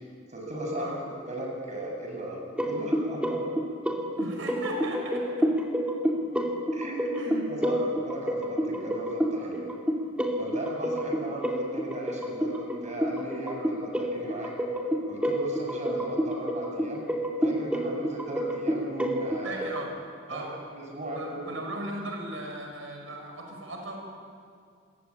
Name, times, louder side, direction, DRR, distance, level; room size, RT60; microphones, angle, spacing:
voice 1, 0.3-3.4 6.7-7.0 7.5-9.6 10.4-14.5 15.1-17.1 17.4-19.7 20.3-20.4 20.7-21.5, right 1 dB, 35° right, 0 dB, 7.5 m, -36 dB
sound 1, 2.6-19.8, equal, 5° right, 2.4 m, -29 dB
voice 2, 4.2-5.5 7.0-7.5 19.4-19.9 20.3-20.5 21.2-24.0, right 1 dB, 80° right, 2 dB, 6.0 m, -37 dB
28.5 x 23.0 x 8.8 m, 2.2 s
head